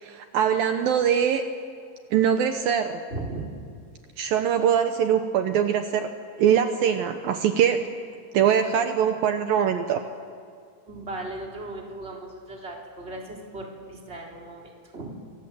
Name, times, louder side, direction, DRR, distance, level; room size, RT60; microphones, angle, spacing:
voice 1, 0.0-1.4 2.1-2.9 4.2-6.1 6.4-7.8 8.3-10.0, right 8 dB, 80° right, 7 dB, 2.1 m, -22 dB
voice 2, 3.1-3.4 10.9-15.1, right 2 dB, 15° right, -1 dB, 3.3 m, -37 dB
29.0 x 24.5 x 7.8 m, 2.3 s
omnidirectional pair, 5.4 m